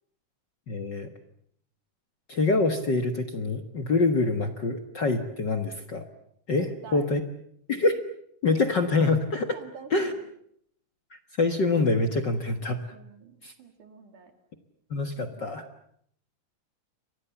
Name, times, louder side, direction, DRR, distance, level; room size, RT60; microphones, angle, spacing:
voice 1, 0.7-1.1 2.3-6.1 6.5-6.7 6.9-7.2 7.7-8.0 8.4-9.6 9.9-10.1 11.4-12.8 13.4-13.5 14.9-15.6, left 3 dB, 45° left, 7 dB, 1.7 m, -25 dB
voice 2, 6.6-7.1 9.5-10.3 12.9-14.3 15.1-15.6, right 6 dB, 70° right, 7 dB, 4.3 m, -47 dB
30.0 x 24.0 x 7.1 m, 0.69 s
omnidirectional pair, 3.7 m